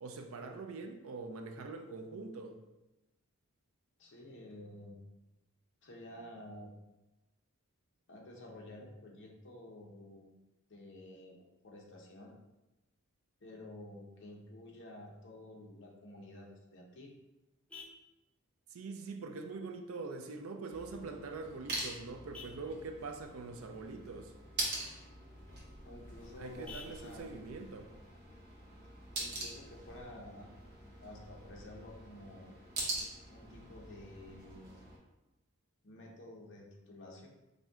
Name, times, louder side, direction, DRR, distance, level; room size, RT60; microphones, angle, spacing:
voice 1, 0.0-2.6 18.7-24.3 26.4-27.9, right 3 dB, 65° right, 5 dB, 0.4 m, -44 dB
voice 2, 4.0-5.0 5.8-6.7 8.1-10.2 10.7-12.3 13.4-17.1 25.8-27.3 29.2-30.5 31.0-32.6 33.3-34.8 35.8-37.3, left 1 dB, 55° left, 0 dB, 0.8 m, -51 dB
Vehicle horn car horn honking, 16.4-29.4, left 4 dB, 5° left, 0.3 m, -59 dB
sound 1, 20.7-35.0, right 2 dB, 45° right, 1.0 m, -44 dB
4.2 x 2.7 x 3.6 m, 1.0 s
head